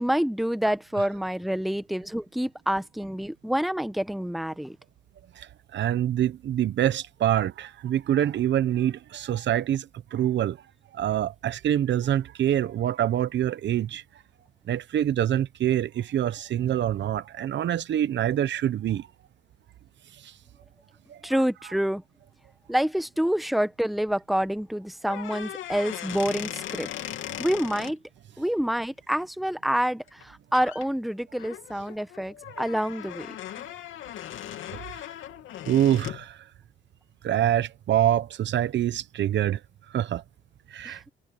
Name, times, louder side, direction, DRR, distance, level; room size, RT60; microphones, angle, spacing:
voice 1, 0.0-4.8 21.2-22.0 22.7-26.9 27.4-28.0 28.4-33.3 40.8-41.0, equal, ahead, 1.1 m, -27 dB
voice 2, 5.4-10.6 10.9-14.0 14.7-19.1 20.2-20.3 21.1-21.2 35.7-36.4 37.2-39.6 39.9-40.2 40.7-41.0, right 11 dB, 65° right, 1.0 m, -25 dB
sound 1, 25.0-27.9 30.1-30.2 30.5-30.9 31.4-36.3, left 12 dB, 85° left, 3.0 m, -38 dB
cardioid pair, 90°, 20 cm